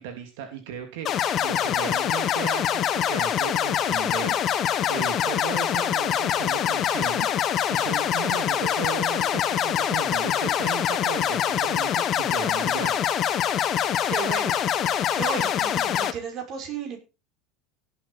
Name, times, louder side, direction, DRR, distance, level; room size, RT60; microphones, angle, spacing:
voice 1, 0.0-13.0, right 9 dB, 75° right, 5 dB, 2.8 m, -36 dB
sound 1, 1.0-16.1, left 9 dB, 35° left, 1.5 m, -24 dB
voice 2, 14.1-14.6 15.2-17.0, right 6 dB, 40° right, 3 dB, 6.0 m, -33 dB
18.0 x 8.9 x 4.1 m, 0.31 s
cardioid pair, 155°, 0 cm